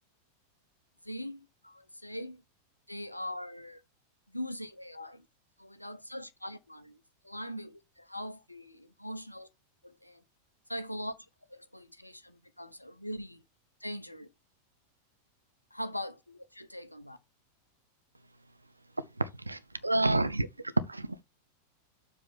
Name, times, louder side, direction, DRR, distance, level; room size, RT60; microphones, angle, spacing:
voice 1, 1.0-2.4 2.9-3.8 4.3-5.3 5.6-9.5 9.8-10.2 10.7-11.1 11.5-13.4 13.8-14.3 15.7-17.2, equal, 85° left, 0.9 m, -41 dB
voice 2, 19.2-20.5 20.9-21.2, right 2 dB, 85° right, 0.7 m, -29 dB
7.3 x 3.6 x 6.3 m
figure-of-eight pair, 90°, 0 cm